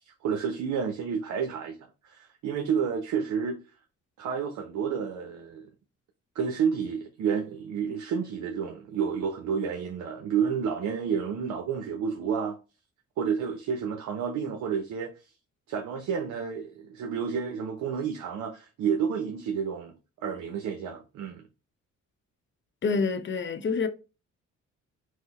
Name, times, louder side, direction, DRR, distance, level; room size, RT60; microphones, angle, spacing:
voice 1, 0.1-1.8 2.0-3.6 4.2-5.7 6.3-12.6 13.2-15.3 15.7-19.9 20.2-21.4, right 7 dB, 75° right, 0.7 m, -30 dB
voice 2, 22.8-23.9, left 4 dB, 40° left, 0.7 m, -27 dB
4.8 x 2.1 x 4.1 m
cardioid pair, 90°, 30 cm